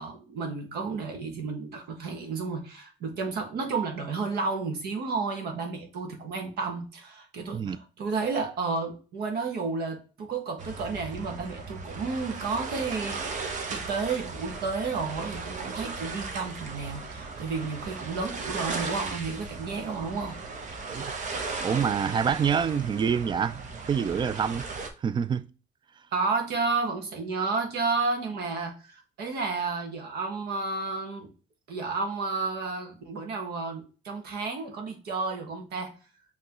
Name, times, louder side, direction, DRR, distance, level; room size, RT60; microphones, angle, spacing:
voice 1, 0.0-13.2 13.7-20.4 26.1-31.3 31.7-36.0, right 4 dB, 70° right, 1.4 m, -31 dB
sound 1, 10.6-24.9, right 4 dB, 45° right, 1.1 m, -37 dB
voice 2, 21.6-24.7 25.0-25.5, right 7 dB, 25° right, 0.4 m, -26 dB
5.6 x 3.1 x 3.0 m
cardioid pair, 110°, 17 cm